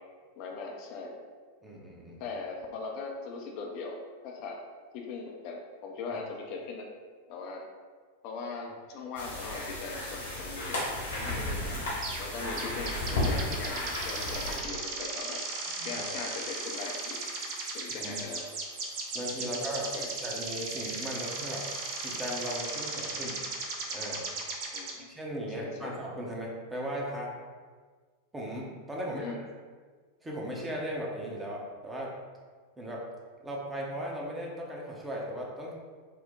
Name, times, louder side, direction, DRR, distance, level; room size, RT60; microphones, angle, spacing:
voice 1, 0.4-1.1 2.2-4.0 4.2-4.6 4.9-6.9 7.3-7.6 8.2-10.8 11.6-11.8 12.2-15.4 15.8-17.2 17.7-18.4 19.4-19.6 19.9-20.1 24.7-25.1 25.6-25.9 29.0-29.4, left 4 dB, 45° left, 0 dB, 0.5 m, -40 dB
voice 2, 1.6-2.2 6.1-6.2 11.2-11.8 15.7-16.0 18.0-18.2 19.1-19.9 20.2-21.6 22.0-23.4 23.9-24.2 25.1-27.3 28.3-29.3 30.2-32.1 32.8-33.0 33.4-35.7, equal, 10° right, -3 dB, 0.8 m, -37 dB
sound 1, 9.2-14.6, left 1 dB, 70° left, 1.2 m, -33 dB
sound 2, 12.0-12.3 12.6-24.9, right 3 dB, 45° right, 0.6 m, -36 dB
4.4 x 2.1 x 3.7 m, 1.5 s
figure-of-eight pair, 90°, 0 cm